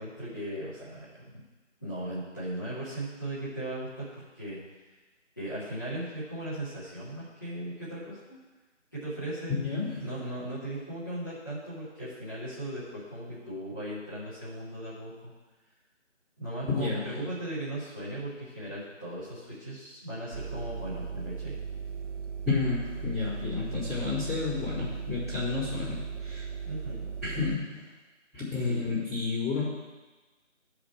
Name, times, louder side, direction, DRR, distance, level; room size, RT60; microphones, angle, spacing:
voice 1, 0.0-1.4 1.8-4.6 5.4-8.4 8.9-9.6 10.0-15.3 16.4-21.6 26.6-27.1 28.6-28.8, right 1 dB, 15° left, -13 dB, 2.5 m, -37 dB
voice 2, 9.5-10.0 16.7-17.0 22.5-26.4 27.2-27.8 28.3-29.6, left 4 dB, ahead, -33 dB, 1.7 m, -30 dB
sound 1, 20.3-27.6, right 6 dB, 70° right, 0.8 m, -38 dB
14.0 x 5.0 x 4.7 m, 1.2 s
figure-of-eight pair, 180°, 37 cm